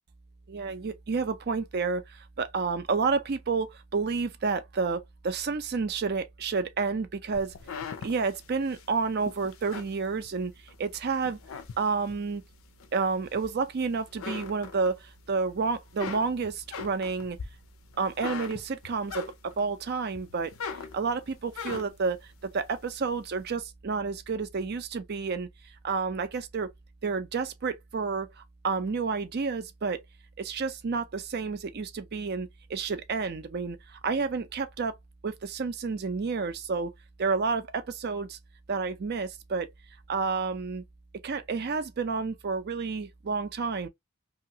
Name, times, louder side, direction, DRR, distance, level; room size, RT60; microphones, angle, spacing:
voice 1, 0.5-7.5 8.0-10.5 10.8-11.4 11.8-12.4 12.9-17.4 18.0-20.5 20.9-22.2 22.4-25.5 25.8-26.7 27.0-30.0 30.4-35.0 35.2-36.9 37.2-38.4 38.7-39.7 40.1-40.8 41.2-43.9, right 4 dB, 50° right, 0.5 m, -30 dB
Floor Creak, 7.3-10.8 11.2-12.3 12.8-13.8 14.1-15.3 15.7-19.7 20.1-22.1, left 6 dB, 70° left, 0.4 m, -40 dB
2.8 x 2.4 x 2.6 m
head